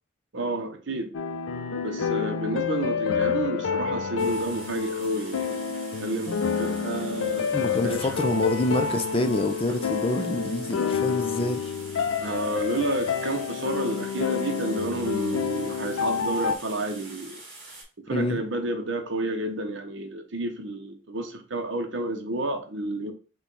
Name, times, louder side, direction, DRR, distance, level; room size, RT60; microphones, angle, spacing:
voice 1, 0.3-1.1 1.8-5.6 6.0-8.2 12.2-17.4 18.0-23.1, right 2 dB, 70° right, 0.8 m, -30 dB
sound 1, 1.1-16.6, left 6 dB, 90° left, 0.5 m, -29 dB
sound 2, 4.2-17.8, right 2 dB, 45° right, 2.4 m, -45 dB
voice 2, 7.5-11.7 18.1-18.4, left 2 dB, 30° left, 0.4 m, -27 dB
5.6 x 2.3 x 3.9 m
head